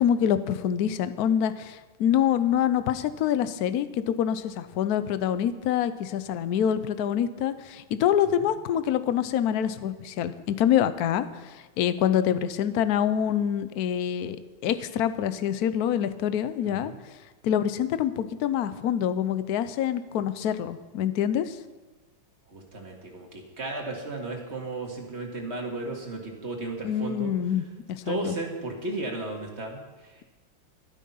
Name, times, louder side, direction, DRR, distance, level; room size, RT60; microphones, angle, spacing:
voice 1, 0.0-14.4 14.6-16.9 17.4-21.6 26.8-28.3, left 9 dB, 65° left, 12 dB, 1.0 m, -26 dB
voice 2, 16.6-17.0 22.5-27.3 28.1-30.2, right 2 dB, 35° right, 1 dB, 2.1 m, -35 dB
12.0 x 12.0 x 5.6 m, 1.2 s
omnidirectional pair, 2.2 m